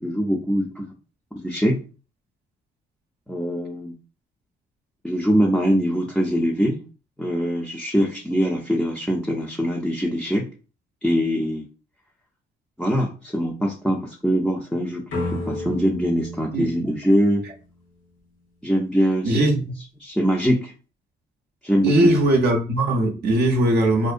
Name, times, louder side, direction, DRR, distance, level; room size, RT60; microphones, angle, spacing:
voice 1, 0.0-0.9 1.4-1.8 3.3-3.9 5.0-6.8 7.2-10.5 11.0-11.7 12.8-17.4 18.6-19.4 20.0-20.7 21.6-22.1, equal, 5° left, 0.4 m, -23 dB
sound 1, 15.1-18.0, left 2 dB, 75° left, 0.9 m, -33 dB
voice 2, 19.2-19.6 21.8-24.1, right 1 dB, 55° right, 0.6 m, -19 dB
2.5 x 2.1 x 2.4 m
cardioid pair, 90°, 20 cm